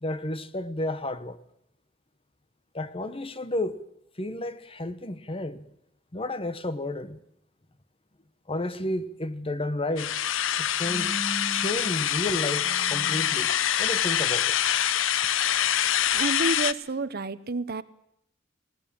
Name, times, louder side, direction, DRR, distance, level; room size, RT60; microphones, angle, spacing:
voice 1, 0.0-1.4 2.7-3.8 4.2-5.6 6.1-7.2 8.5-10.2 10.6-14.6, left 1 dB, 30° left, 1.1 m, -32 dB
sound 1, 10.0-16.7, left 10 dB, 75° left, 0.7 m, -25 dB
voice 2, 16.1-17.8, right 3 dB, 50° right, 0.9 m, -29 dB
20.0 x 18.0 x 8.8 m
head